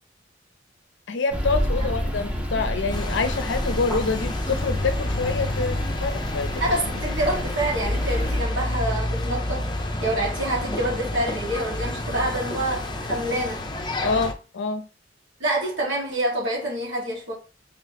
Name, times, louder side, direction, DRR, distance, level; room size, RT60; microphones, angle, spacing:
voice 1, 1.1-6.6 14.0-14.9, left 4 dB, 70° left, 0.5 m, -26 dB
sound 1, 1.3-8.4, equal, 5° right, 0.8 m, -29 dB
sound 2, 2.9-14.3, left 1 dB, 25° left, 0.6 m, -29 dB
voice 2, 6.6-13.7 15.4-17.3, right 1 dB, 75° right, 1.9 m, -27 dB
3.4 x 2.9 x 4.0 m
head